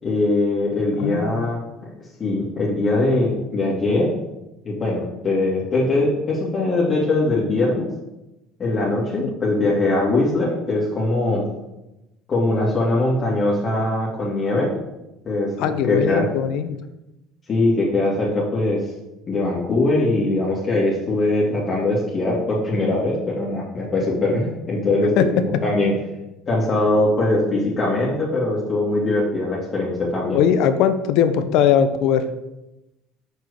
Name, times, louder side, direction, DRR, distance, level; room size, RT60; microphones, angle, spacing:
voice 1, 0.0-1.6 2.2-4.1 4.6-7.9 8.6-11.5 12.3-14.7 15.2-16.3 17.5-18.8 19.3-25.9 26.5-30.4, left 2 dB, 35° left, -5 dB, 2.4 m, -21 dB
voice 2, 1.0-1.5 15.6-16.8 25.2-25.4 30.3-32.3, left 8 dB, 70° left, 10 dB, 0.7 m, -20 dB
6.4 x 4.7 x 6.7 m, 0.95 s
supercardioid pair, 85°, 0 cm